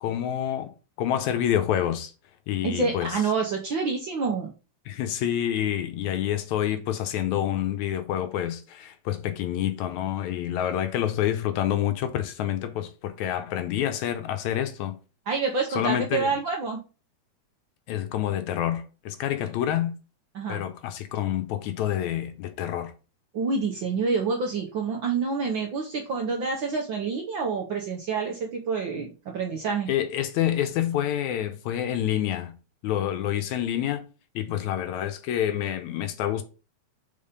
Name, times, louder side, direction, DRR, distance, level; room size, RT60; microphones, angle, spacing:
voice 1, 0.0-0.7 1.0-2.1 2.5-3.1 4.9-15.0 15.7-16.3 17.9-19.9 20.5-22.9 29.9-32.5 32.8-34.0 34.4-36.4, left 11 dB, 80° left, 2.1 m, -27 dB
voice 2, 2.6-4.5 15.3-16.8 20.3-20.6 23.3-29.9, right 4 dB, 75° right, 1.1 m, -27 dB
5.6 x 4.1 x 5.0 m
omnidirectional pair, 3.4 m